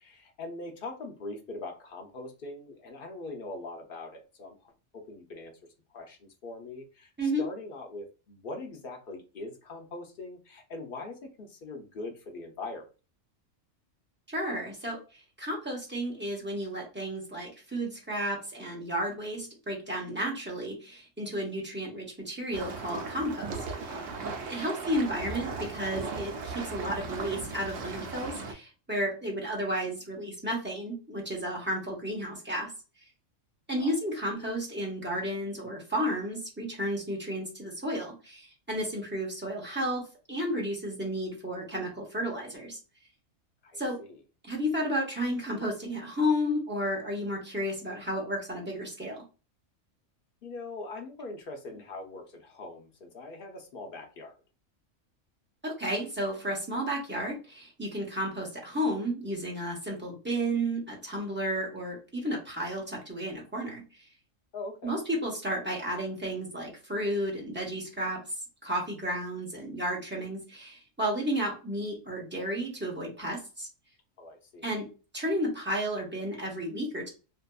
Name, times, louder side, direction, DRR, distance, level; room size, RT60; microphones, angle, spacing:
voice 1, 0.0-5.5 5.9-12.8 24.5-24.9 33.8-34.0 43.6-44.2 50.4-54.4 64.5-65.0 74.2-74.7, left 2 dB, 55° left, 4 dB, 0.6 m, -42 dB
voice 2, 14.3-23.5 23.8-24.1 24.5-32.7 33.7-42.8 43.8-44.0 44.4-49.2 55.6-63.8 64.8-68.2 68.6-73.7 74.6-74.9 75.1-77.1, equal, 10° right, -2 dB, 0.7 m, -32 dB
sound 1, 22.5-28.5, right 4 dB, 75° right, 1.0 m, -37 dB
2.7 x 2.5 x 2.2 m, 0.32 s
omnidirectional pair, 1.3 m